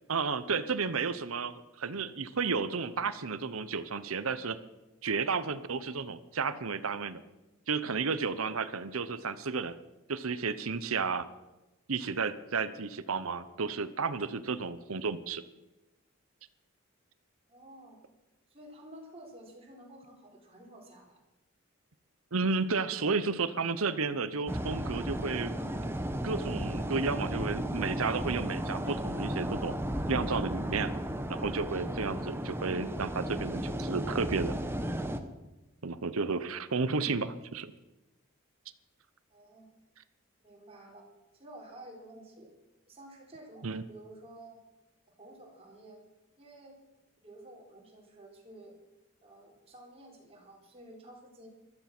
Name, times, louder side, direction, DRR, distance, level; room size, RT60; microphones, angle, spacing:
voice 1, 0.1-4.6 5.0-7.2 7.7-9.8 10.1-11.3 11.9-15.4 22.3-25.6 26.2-29.7 30.1-30.9 31.3-34.6 35.8-37.7 43.6-43.8, right 4 dB, 80° right, 13 dB, 0.9 m, -32 dB
voice 2, 17.5-18.0 18.5-21.2 22.8-23.2 23.8-23.9 39.3-39.7 40.4-41.1 41.3-42.5 42.9-44.6 45.2-46.0 46.4-46.8 47.2-48.8 49.2-51.5, right 1 dB, 30° right, -1 dB, 4.2 m, -51 dB
sound 1, 24.5-35.2, right 1 dB, 10° right, 1.0 m, -34 dB
15.5 x 13.0 x 6.1 m, 1.0 s
head